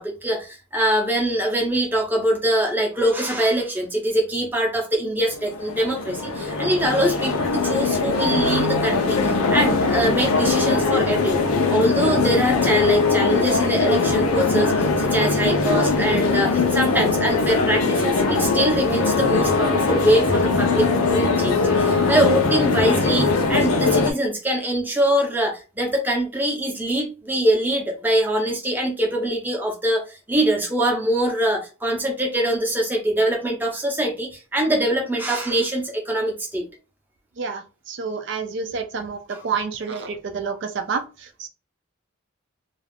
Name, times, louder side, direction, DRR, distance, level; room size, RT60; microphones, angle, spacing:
voice 1, 0.0-36.7 39.3-39.4, right 1 dB, 10° right, 1 dB, 0.6 m, -23 dB
sound 1, 5.3-24.1, left 4 dB, 90° left, 0.6 m, -21 dB
voice 2, 37.4-41.5, right 5 dB, 55° right, 5 dB, 0.4 m, -29 dB
2.4 x 2.3 x 3.3 m, 0.32 s
head